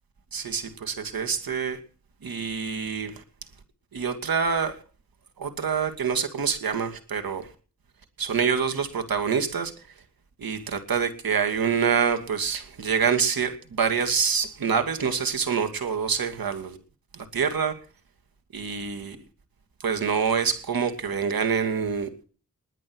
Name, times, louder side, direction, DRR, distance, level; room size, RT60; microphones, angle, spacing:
voice 1, 0.3-1.8 2.2-3.1 3.9-4.8 5.4-7.5 8.2-9.7 10.4-16.8 17.3-17.7 18.5-19.2 19.8-22.1, right 6 dB, 80° right, 2.6 m, -26 dB
21.5 x 9.2 x 6.3 m
cardioid pair, 70°, 35 cm